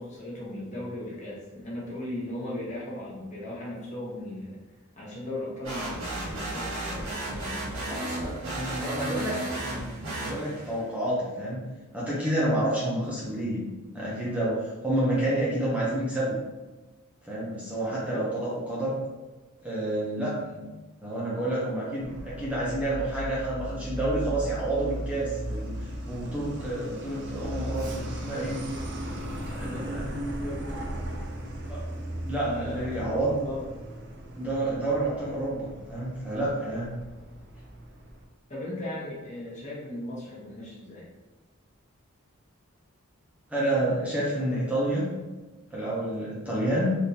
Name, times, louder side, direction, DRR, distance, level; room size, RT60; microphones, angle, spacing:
voice 1, 0.0-4.6 5.0-7.6 17.9-18.3 29.5-30.8 32.4-33.6 38.5-41.1, left 1 dB, 35° left, -5 dB, 0.9 m, -37 dB
sound 1, 5.6-10.8, right 1 dB, 90° right, 1.5 m, -34 dB
voice 2, 7.9-11.7 11.9-16.4 17.3-19.0 19.6-25.7 26.1-28.6 29.5-30.0 31.7-31.8 32.2-33.4 34.4-36.9 43.5-45.1 45.7-47.0, right 1 dB, 5° right, -7 dB, 0.6 m, -29 dB
Truck, 22.0-38.2, right 1 dB, 55° right, 0.5 m, -37 dB
3.5 x 2.6 x 2.7 m, 1.2 s
head